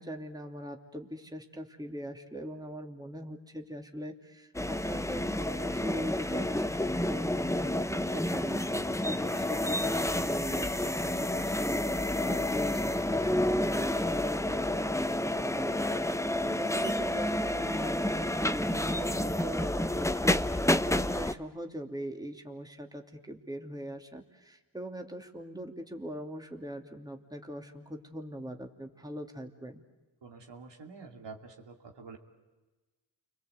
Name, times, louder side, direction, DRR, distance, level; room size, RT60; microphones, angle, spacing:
voice 1, 0.0-20.6 20.8-29.8, equal, 10° right, 3 dB, 2.8 m, -41 dB
sound 1, 4.5-21.3, left 1 dB, 5° left, 0.8 m, -30 dB
voice 2, 16.4-16.9 30.2-32.2, right 4 dB, 75° right, 2 dB, 2.8 m, -48 dB
29.5 x 22.5 x 8.1 m, 1.2 s
cardioid pair, 45°, 43 cm